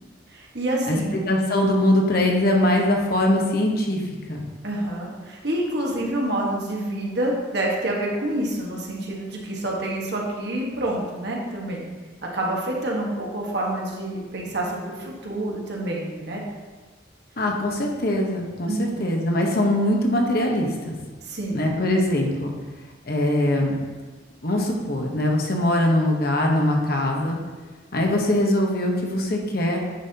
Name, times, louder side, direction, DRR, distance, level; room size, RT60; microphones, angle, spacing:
voice 1, 0.3-1.2 4.6-11.9 12.3-16.4 18.7-19.0 21.2-21.6, right 1 dB, 60° right, -2 dB, 1.4 m, -27 dB
voice 2, 1.3-4.0 4.3-4.4 17.4-18.7 19.0-20.9 21.5-22.5 23.1-23.8 24.4-27.4 27.9-29.8, left 1 dB, 55° left, 1 dB, 1.1 m, -22 dB
9.1 x 5.6 x 2.8 m, 1.3 s
head